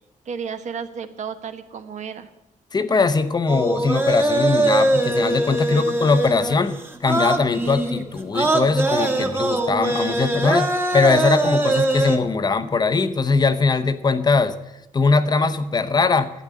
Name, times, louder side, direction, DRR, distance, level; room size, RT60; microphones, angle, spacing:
voice 1, 0.2-2.3 5.5-5.8 9.1-9.5, right 7 dB, 60° right, 9 dB, 1.2 m, -33 dB
voice 2, 2.7-14.5 14.9-16.3, left 4 dB, 30° left, 10 dB, 0.8 m, -21 dB
sound 1, 3.5-12.2, right 2 dB, 15° right, 1.3 m, -22 dB
12.0 x 8.8 x 9.3 m, 0.90 s
wide cardioid pair, 170°, 14 cm